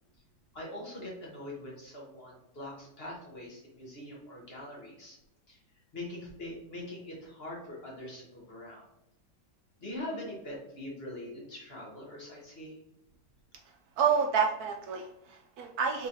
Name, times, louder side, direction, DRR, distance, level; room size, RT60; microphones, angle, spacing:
voice 1, 0.5-5.2 5.5-5.6 5.9-8.8 9.8-12.8, left 1 dB, 40° left, -3 dB, 1.1 m, -43 dB
voice 2, 14.0-16.1, right 6 dB, 70° right, 2 dB, 1.0 m, -29 dB
3.8 x 3.8 x 2.8 m, 0.85 s
omnidirectional pair, 1.8 m